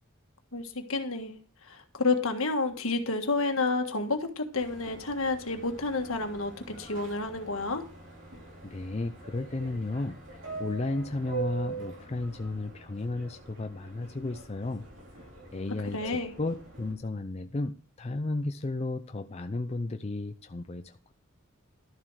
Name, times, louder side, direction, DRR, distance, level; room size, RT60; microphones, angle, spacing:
voice 1, 0.5-1.4 1.6-7.9 15.9-16.3, left 3 dB, 75° left, 6 dB, 1.6 m, -30 dB
Subway metro underground, 4.5-16.9, right 4 dB, 60° right, 3.6 m, -43 dB
voice 2, 8.6-10.2 10.6-14.9 15.5-21.1, left 2 dB, 30° left, 7 dB, 0.5 m, -33 dB
12.5 x 7.3 x 4.7 m, 0.40 s
head